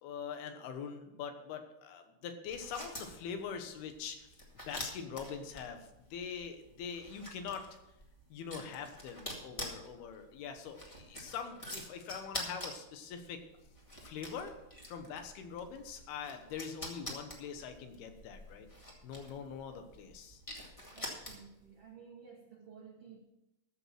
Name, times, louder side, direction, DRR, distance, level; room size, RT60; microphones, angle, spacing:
voice 1, 0.0-4.4 4.7-7.7 8.3-13.4 14.0-14.5 14.9-18.7 19.0-20.4, left 6 dB, 85° left, 7 dB, 3.1 m, -43 dB
sound 1, 2.4-21.7, left 1 dB, 25° left, 0.7 m, -47 dB
voice 2, 20.9-23.2, right 6 dB, 85° right, 1 dB, 1.3 m, -54 dB
14.0 x 7.1 x 5.9 m, 0.92 s
omnidirectional pair, 4.4 m